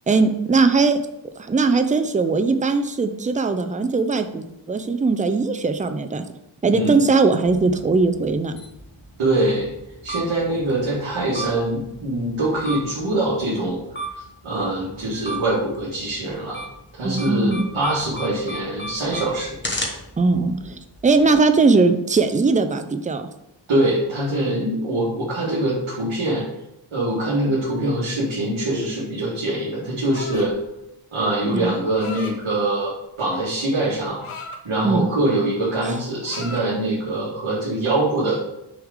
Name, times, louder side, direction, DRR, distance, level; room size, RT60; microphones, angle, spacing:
voice 1, 0.1-1.0 1.5-6.2 6.6-8.6 17.0-17.6 20.2-23.3 31.5-31.7 34.8-35.1, right 3 dB, 20° right, 8 dB, 0.3 m, -19 dB
sound 1, 7.4-21.4, right 1 dB, 20° left, 1.1 m, -36 dB
voice 2, 9.2-9.7 10.0-13.8 14.4-16.7 16.9-19.6 23.7-26.4 26.9-30.5 31.1-32.9 33.2-34.2 34.7-38.4, right 1 dB, 75° right, -7 dB, 1.7 m, -23 dB
sound 2, 30.1-30.6 31.7-32.4 33.3-34.6 35.1-35.4 35.6-36.7, left 3 dB, 80° left, 0.9 m, -37 dB
6.2 x 3.6 x 4.9 m, 0.88 s
wide cardioid pair, 165°, 49 cm